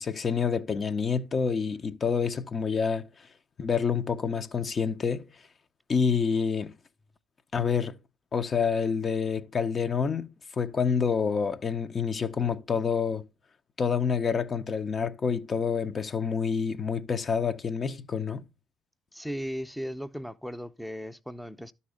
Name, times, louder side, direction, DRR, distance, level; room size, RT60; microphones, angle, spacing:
voice 1, 0.0-3.1 3.6-5.3 5.9-6.8 7.5-8.0 8.3-10.3 10.6-13.3 13.8-18.4, left 6 dB, 40° left, 0.6 m, -27 dB
voice 2, 19.1-21.7, equal, ahead, 0.6 m, -36 dB
12.0 x 4.2 x 3.7 m
hypercardioid pair, 55°, 0 cm